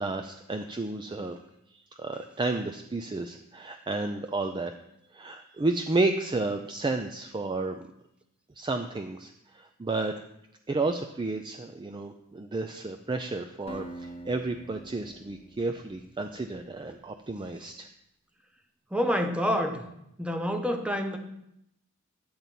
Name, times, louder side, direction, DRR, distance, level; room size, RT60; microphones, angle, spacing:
voice 1, 0.0-1.4 2.0-4.7 5.1-7.9 8.6-10.1 10.7-17.9, right 3 dB, 20° right, 6 dB, 0.4 m, -31 dB
Acoustic guitar, 13.7-16.7, right 1 dB, 30° left, 0.8 m, -45 dB
voice 2, 18.9-19.8 20.2-21.2, equal, 5° right, 5 dB, 0.8 m, -27 dB
10.5 x 4.0 x 7.5 m, 0.81 s
head